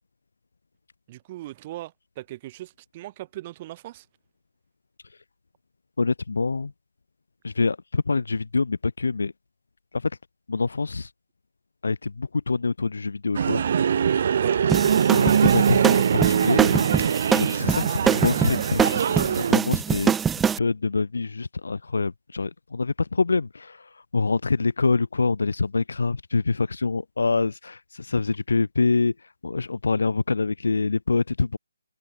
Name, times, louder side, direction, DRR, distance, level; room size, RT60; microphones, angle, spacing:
voice 1, 1.1-4.1 14.4-14.6 15.4-15.6 16.4-16.7, right 16 dB, 25° right, 3.0 m, -38 dB
voice 2, 6.0-6.7 7.4-9.3 10.5-11.1 11.8-13.6 15.1-15.8 16.1-16.6 17.5-20.1 20.6-23.8 24.1-29.1 29.4-31.6, left 4 dB, 75° left, 1.0 m, -25 dB
sound 1, 13.3-19.5, right 7 dB, 40° right, 2.8 m, -22 dB
sound 2, 14.7-20.6, right 7 dB, 5° right, 0.3 m, -24 dB
hypercardioid pair, 165°, 0 cm